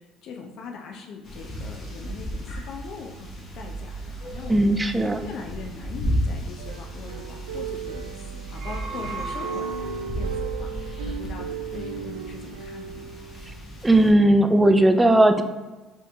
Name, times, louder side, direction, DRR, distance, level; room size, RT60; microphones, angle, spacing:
voice 1, 0.2-4.8 5.2-8.0 8.3-13.1, left 5 dB, 60° left, 2 dB, 0.5 m, -41 dB
sound 1, 1.2-14.1, equal, 45° left, 1.2 m, -34 dB
voice 2, 4.5-5.2 13.8-15.4, right 1 dB, 15° right, 8 dB, 0.4 m, -17 dB
sound 2, 6.6-13.6 14.1-14.4, right 8 dB, 90° right, 0.3 m, -36 dB
sound 3, 8.3-10.2, right 4 dB, 50° right, 0.8 m, -36 dB
4.5 x 3.0 x 3.4 m, 1.2 s
hypercardioid pair, 65°, 0 cm